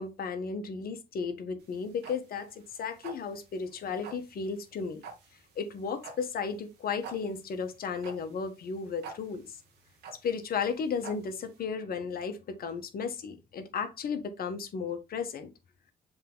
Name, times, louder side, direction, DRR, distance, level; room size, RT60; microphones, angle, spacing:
voice 1, 0.0-5.0 5.6-9.4 10.2-15.5, left 5 dB, 65° left, 1.3 m, -34 dB
sound 1, 1.6-11.6, right 4 dB, 85° right, 1.7 m, -48 dB
7.2 x 3.6 x 3.8 m
supercardioid pair, 60°, 17 cm